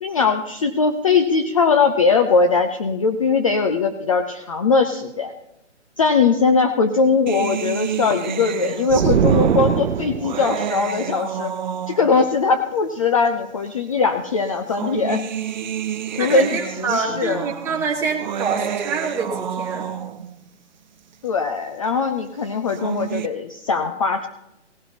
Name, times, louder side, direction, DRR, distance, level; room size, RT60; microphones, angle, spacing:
voice 1, 0.0-5.3 6.0-11.5 11.9-15.3 16.2-17.5 21.2-24.3, left 4 dB, 30° left, 7 dB, 0.5 m, -20 dB
sound 1, 7.3-12.3 13.3-13.4 14.5-20.4 22.5-23.3, right 9 dB, 40° right, 0.5 m, -30 dB
sound 2, 8.9-10.5, right 7 dB, 70° right, 0.7 m, -20 dB
voice 2, 16.2-19.9, right 5 dB, 5° right, -2 dB, 1.3 m, -26 dB
18.0 x 11.5 x 2.9 m, 0.88 s
figure-of-eight pair, 145°, 36 cm